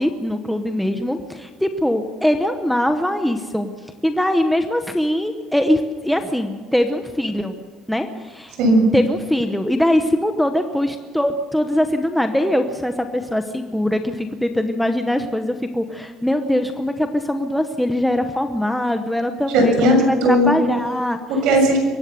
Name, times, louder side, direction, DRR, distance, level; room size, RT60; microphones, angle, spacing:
voice 1, 0.0-3.7 4.0-7.6 7.9-8.5 8.9-21.2, left 1 dB, ahead, 6 dB, 0.9 m, -22 dB
voice 2, 8.6-8.9 19.5-20.6 21.3-21.8, right 1 dB, 60° right, 4 dB, 6.9 m, -16 dB
23.0 x 18.0 x 6.9 m, 1.5 s
cardioid pair, 180°, 0 cm